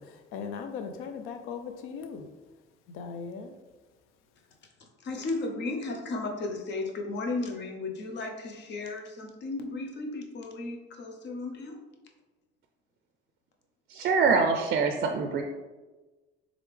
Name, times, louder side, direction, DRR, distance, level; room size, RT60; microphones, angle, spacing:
voice 1, 0.0-2.3 2.9-3.5, left 6 dB, 90° left, 8 dB, 0.5 m, -38 dB
voice 2, 5.0-11.8, left 3 dB, 60° left, 2 dB, 0.7 m, -34 dB
voice 3, 13.9-15.4, right 5 dB, 50° right, 4 dB, 0.4 m, -24 dB
3.6 x 3.4 x 3.3 m, 1.2 s
cardioid pair, 110°, 21 cm